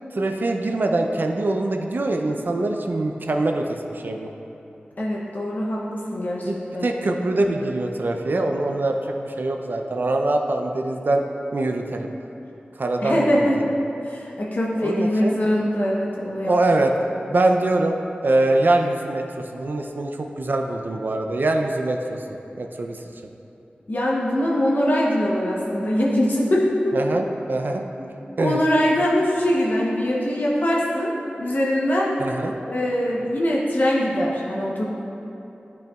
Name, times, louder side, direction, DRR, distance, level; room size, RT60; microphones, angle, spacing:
voice 1, 0.1-4.3 6.4-11.2 11.5-12.1 12.8-13.4 14.8-15.4 16.4-16.9 17.3-18.0 18.2-19.2 19.5-22.2 22.5-23.0 26.9-28.1 28.4-28.6 32.2-32.5, right 2 dB, 65° right, 3 dB, 0.5 m, -23 dB
voice 2, 5.0-6.9 13.0-13.6 14.0-16.5 17.1-17.2 23.9-27.0 28.0-28.1 28.4-32.2 32.7-34.8, equal, 55° left, -4 dB, 0.8 m, -22 dB
10.5 x 5.1 x 2.3 m, 3.0 s
wide cardioid pair, 70°, 4 cm